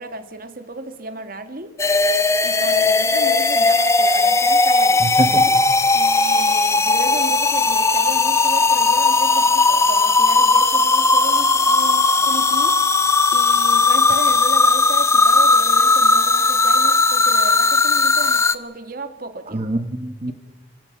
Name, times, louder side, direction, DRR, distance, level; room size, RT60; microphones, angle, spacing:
voice 1, 0.0-1.7 2.4-5.2 5.9-12.8 13.3-19.7, right 2 dB, 50° right, 8 dB, 2.0 m, -34 dB
sound 1, 1.8-18.5, left 3 dB, 15° left, 0.8 m, -17 dB
voice 2, 5.0-5.6 19.5-20.3, right 1 dB, 35° right, 5 dB, 1.1 m, -25 dB
29.0 x 17.0 x 5.9 m, 1.1 s
head